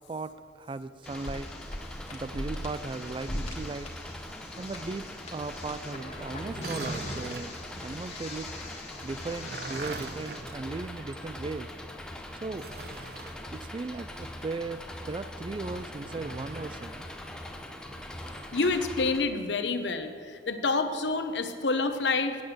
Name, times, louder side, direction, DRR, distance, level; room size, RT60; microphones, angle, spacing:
voice 1, 0.1-1.5 2.1-3.9 4.6-8.5 9.0-11.7 12.3-12.7 13.5-17.1, right 3 dB, 30° right, 14 dB, 0.3 m, -37 dB
sound 1, 1.0-10.4, left 1 dB, 35° left, 1.5 m, -41 dB
Engine, 1.1-19.2, left 1 dB, 5° left, 0.7 m, -42 dB
sound 2, 6.5-7.6 9.1-11.3 11.6-11.7 12.5-13.4 15.9-16.9 18.2-18.9, right 4 dB, 60° right, 0.6 m, -43 dB
voice 2, 18.5-22.4, left 3 dB, 75° left, 8 dB, 0.8 m, -28 dB
8.6 x 7.6 x 7.8 m, 2.2 s
head